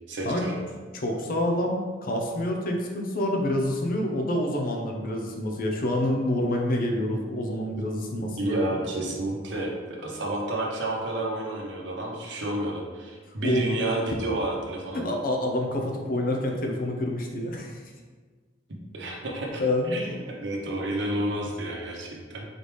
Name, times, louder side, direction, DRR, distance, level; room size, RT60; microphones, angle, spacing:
voice 1, 0.1-0.6 8.4-15.1 18.9-22.4, right 1 dB, 70° right, -1 dB, 0.8 m, -30 dB
voice 2, 0.9-8.6 13.4-13.7 14.9-17.8 19.6-20.0, left 1 dB, 50° left, 2 dB, 0.7 m, -27 dB
4.1 x 3.4 x 3.2 m, 1.4 s
head